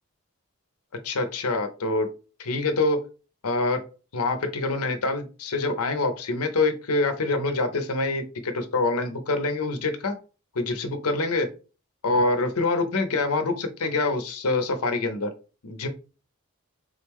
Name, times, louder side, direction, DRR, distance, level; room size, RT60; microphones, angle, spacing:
voice 1, 1.0-2.1 2.4-3.0 3.4-3.8 4.1-10.1 10.5-11.5 12.0-15.3 15.6-15.9, left 3 dB, 85° left, 8 dB, 0.8 m, -25 dB
3.9 x 3.1 x 3.5 m, 0.34 s
head